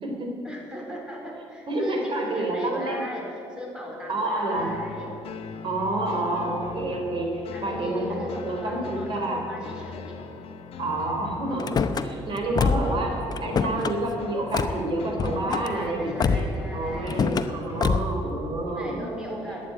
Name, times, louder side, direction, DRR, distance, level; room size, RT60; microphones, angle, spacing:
voice 1, 0.4-5.1 7.5-10.3 15.5-17.2 18.7-19.7, equal, 10° right, -1 dB, 4.1 m, -38 dB
voice 2, 1.7-3.0 4.1-4.7 5.6-8.1 8.4-9.4 10.8-11.7 12.0-13.1 13.4-19.0, right 2 dB, 50° right, 1 dB, 3.7 m, -28 dB
sound 1, 4.6-17.9, left 6 dB, 65° left, 0.9 m, -41 dB
Car / Slam, 11.6-12.1 12.5-13.0 13.3-13.9 14.5-14.8 15.2-15.7 16.2-16.6 17.1-17.5 17.8-18.2, left 5 dB, 40° left, 0.8 m, -25 dB
11.5 x 9.4 x 9.4 m, 2.7 s
cardioid pair, 100°, 11 cm